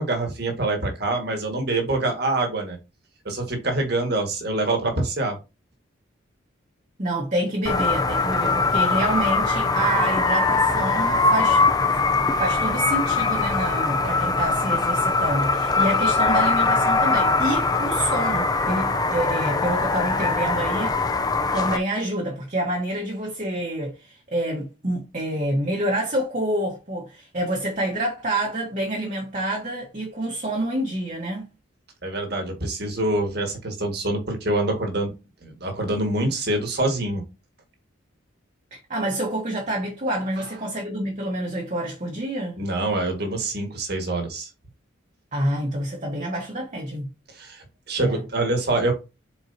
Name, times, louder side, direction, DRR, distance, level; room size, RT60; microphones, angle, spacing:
voice 1, 0.0-2.8 3.3-5.4 32.0-35.1 35.4-37.2 40.4-40.5 42.6-44.5 47.3-48.9, right 2 dB, 55° right, 1.9 m, -25 dB
voice 2, 7.0-11.6 12.4-21.0 21.5-31.4 38.7-42.6 45.3-47.1 48.0-48.2, right 1 dB, 40° right, 1.3 m, -27 dB
sound 1, 7.7-21.8, left 3 dB, 20° left, 0.5 m, -22 dB
7.3 x 4.6 x 2.8 m
head